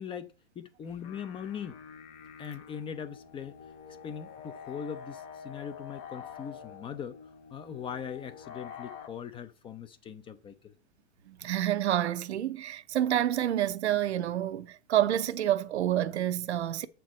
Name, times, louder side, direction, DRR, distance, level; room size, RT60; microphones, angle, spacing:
voice 1, 0.0-1.8 2.4-3.5 4.0-7.2 7.5-10.7, left 7 dB, 15° left, 0.5 m, -40 dB
sound 1, 0.8-9.1, left 7 dB, 45° left, 2.0 m, -47 dB
voice 2, 11.3-16.9, right 11 dB, 80° right, 0.8 m, -28 dB
7.2 x 4.5 x 6.3 m
hypercardioid pair, 120°, 33 cm